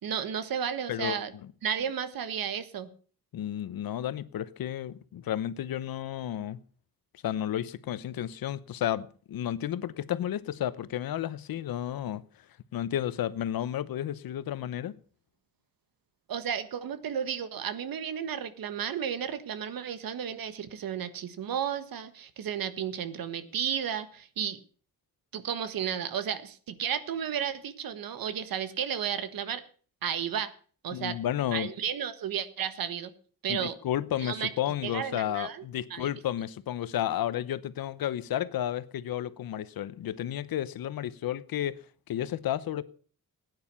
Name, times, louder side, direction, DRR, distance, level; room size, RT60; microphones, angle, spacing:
voice 1, 0.0-1.3 1.6-2.9 16.3-24.6 25.3-29.6 30.0-30.5 30.8-31.2 31.5-33.1 33.4-33.8 34.2-34.5 34.8-35.6 35.9-36.1, right 8 dB, 80° right, 1.5 m, -33 dB
voice 2, 0.9-1.5 3.3-6.6 7.2-12.2 12.7-14.9 30.9-31.7 33.5-41.8 42.1-42.8, left 11 dB, 90° left, 0.9 m, -32 dB
16.5 x 9.6 x 5.5 m
wide cardioid pair, 140°, 34 cm